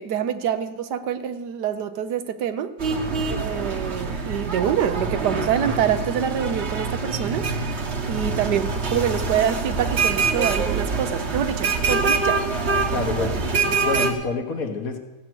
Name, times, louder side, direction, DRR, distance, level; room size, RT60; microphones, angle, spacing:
voice 1, 0.0-2.7 3.3-12.4, right 9 dB, 80° right, 10 dB, 1.4 m, -26 dB
sound 1, 2.8-14.1, right 4 dB, 45° right, 1.3 m, -25 dB
voice 2, 12.8-13.3 13.8-15.0, left 4 dB, 60° left, 4 dB, 1.7 m, -27 dB
16.0 x 8.1 x 6.2 m, 1.1 s
omnidirectional pair, 1.8 m